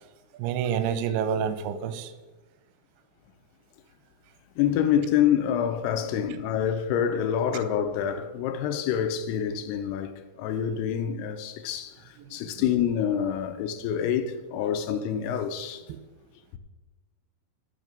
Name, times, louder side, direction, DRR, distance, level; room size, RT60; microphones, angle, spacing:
voice 1, 0.4-2.1 12.3-12.6 15.9-16.0, right 8 dB, 80° right, 2.5 m, -28 dB
voice 2, 4.6-15.8, left 9 dB, 80° left, 2.7 m, -27 dB
13.0 x 5.9 x 5.2 m
omnidirectional pair, 4.7 m